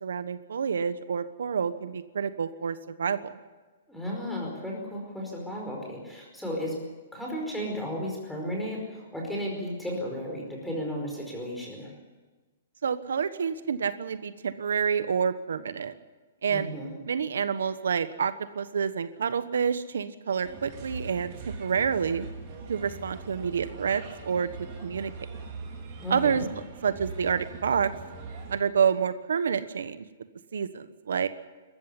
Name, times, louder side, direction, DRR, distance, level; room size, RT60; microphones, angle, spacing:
voice 1, 0.0-3.3 12.8-15.9 16.4-16.7 17.1-22.3 22.7-24.5 24.8-25.1 26.1-26.4 26.8-27.9 28.5-30.0 30.5-31.3, right 6 dB, 90° right, 12 dB, 1.2 m, -28 dB
voice 2, 3.9-6.8 7.1-11.9 16.5-16.9 26.0-26.5, equal, ahead, -2 dB, 5.0 m, -34 dB
Bird, 20.4-28.6, right 4 dB, 30° right, 3.5 m, -41 dB
22.0 x 14.0 x 9.9 m, 1.3 s
hypercardioid pair, 170°, 0 cm